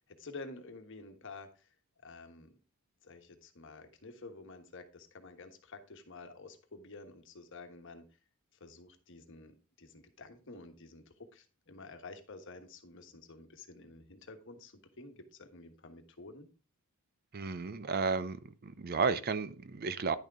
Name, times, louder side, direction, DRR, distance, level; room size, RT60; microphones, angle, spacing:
voice 1, 0.0-1.7 2.0-2.6 3.0-8.0 8.6-16.5, left 3 dB, 60° left, 1.3 m, -50 dB
voice 2, 17.3-20.2, right 5 dB, 45° right, 0.5 m, -33 dB
10.5 x 6.5 x 3.6 m
head